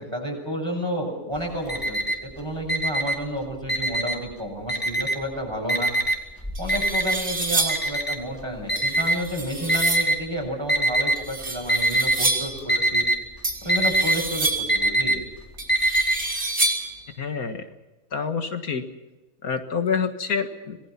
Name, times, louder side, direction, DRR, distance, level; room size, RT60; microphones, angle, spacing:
voice 1, 0.0-5.9 6.6-13.0 13.6-15.2, equal, 15° right, 1 dB, 7.2 m, -31 dB
Alarm, 1.4-2.3 2.6-4.3 4.7-5.3 5.7-10.2 10.7-11.3 11.6-12.2 12.5-16.2, right 1 dB, 15° left, 3.0 m, -23 dB
sound 1, 6.0-6.1 6.5-7.9 8.8-10.2 11.2-12.6 13.4-14.8 15.6-17.0, right 2 dB, 55° right, 4.9 m, -28 dB
voice 2, 17.2-17.7 18.1-18.9 19.4-20.8, left 5 dB, 75° left, 6 dB, 2.1 m, -27 dB
26.5 x 20.0 x 5.9 m, 1.1 s
omnidirectional pair, 1.5 m